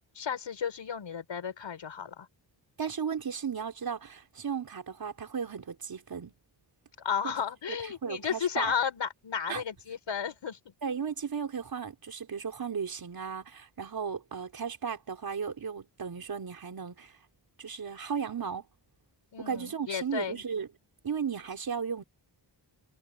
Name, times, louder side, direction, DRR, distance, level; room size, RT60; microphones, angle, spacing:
voice 1, 0.0-2.3 7.0-10.7 19.3-20.4, left 7 dB, 80° left, 6.3 m, -33 dB
voice 2, 2.8-6.3 7.2-7.3 7.7-7.8 8.0-8.7 9.5-9.6 10.8-17.2 17.6-18.7 19.4-20.7 21.0-22.0, right 6 dB, 50° right, 4.4 m, -35 dB
wide cardioid pair, 170°, 45 cm